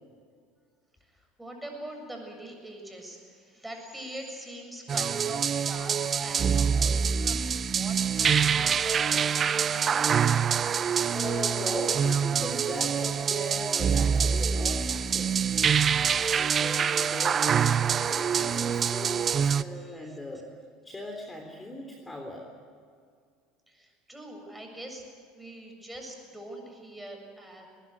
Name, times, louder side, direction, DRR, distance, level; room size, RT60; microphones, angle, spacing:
voice 1, 1.1-10.1 19.3-20.2 23.7-25.0 25.4-27.7, right 1 dB, 5° right, 2 dB, 7.4 m, -44 dB
sound 1, 4.9-19.6, right 7 dB, 35° right, 0.7 m, -25 dB
voice 2, 11.1-15.4 16.1-17.5 17.8-20.5 20.8-22.5, left 1 dB, 15° left, 2 dB, 3.6 m, -39 dB
21.0 x 20.0 x 9.5 m, 2.1 s
hypercardioid pair, 70°, 0 cm